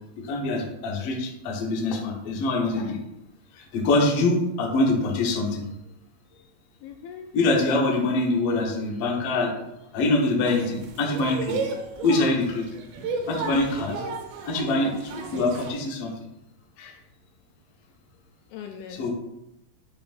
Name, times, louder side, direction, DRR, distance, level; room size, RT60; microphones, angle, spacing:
voice 1, 0.2-3.0 3.6-5.7 7.3-9.5 9.9-11.6 12.0-12.6 13.3-13.9 14.4-16.1 16.8-16.9 19.0-19.1, left 2 dB, 60° left, -1 dB, 1.6 m, -24 dB
voice 2, 6.8-7.3 13.5-13.9 18.5-19.1, left 8 dB, 80° left, 4 dB, 2.2 m, -37 dB
sound 1, 10.5-15.7, right 4 dB, 80° right, 2.7 m, -33 dB
10.0 x 5.2 x 2.5 m, 0.87 s
omnidirectional pair, 4.5 m